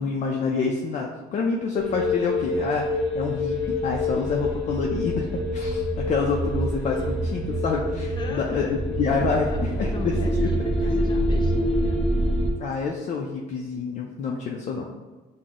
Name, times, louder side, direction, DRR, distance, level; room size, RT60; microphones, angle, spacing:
voice 1, 0.0-2.9 3.1-5.3 5.5-8.7 9.0-10.5 12.6-14.9, left 5 dB, 45° left, 0 dB, 0.5 m, -27 dB
sound 1, 1.7-12.5, equal, ahead, 1.1 m, -26 dB
voice 2, 8.2-8.8 9.3-10.6 11.0-12.0, left 2 dB, 25° left, 0 dB, 0.8 m, -39 dB
5.9 x 2.1 x 3.7 m, 1.3 s
cardioid pair, 110°, 17 cm